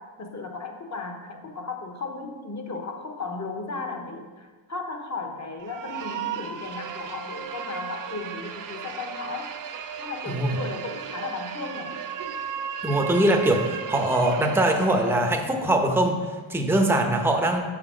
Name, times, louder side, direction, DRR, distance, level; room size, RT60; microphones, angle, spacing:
voice 1, 0.0-9.5 10.0-12.0, left 3 dB, 35° left, 4 dB, 1.0 m, -35 dB
sound 1, 5.6-15.4, right 8 dB, 40° right, 0.6 m, -35 dB
voice 2, 12.8-16.2 16.5-17.6, right 1 dB, 5° right, 2 dB, 0.8 m, -22 dB
6.0 x 5.9 x 5.0 m, 1.4 s
cardioid pair, 95°, 50 cm